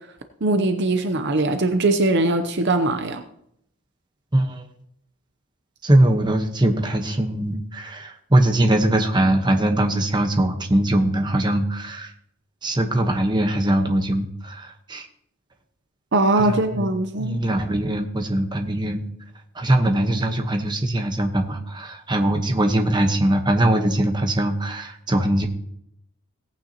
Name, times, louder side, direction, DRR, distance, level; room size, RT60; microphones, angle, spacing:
voice 1, 0.4-3.2 16.1-17.4, right 2 dB, 50° right, 7 dB, 0.7 m, -21 dB
voice 2, 4.3-4.6 5.8-12.1 12.6-15.1 16.3-16.9 17.2-19.0 19.5-25.5, right 1 dB, 20° right, 4 dB, 1.1 m, -21 dB
17.5 x 8.9 x 2.9 m, 0.73 s
head